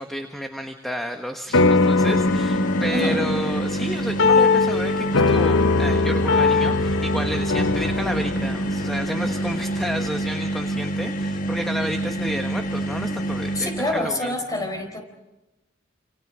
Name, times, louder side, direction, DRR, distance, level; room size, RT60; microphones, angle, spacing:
voice 1, 0.0-14.4, equal, ahead, 4 dB, 1.3 m, -31 dB
sound 1, 1.5-10.2, left 3 dB, 80° left, 0.8 m, -22 dB
sound 2, 1.5-14.1, right 1 dB, 45° left, 1.2 m, -27 dB
voice 2, 13.5-15.0, left 1 dB, 20° left, 4 dB, 4.6 m, -26 dB
28.5 x 28.0 x 5.0 m, 1.0 s
head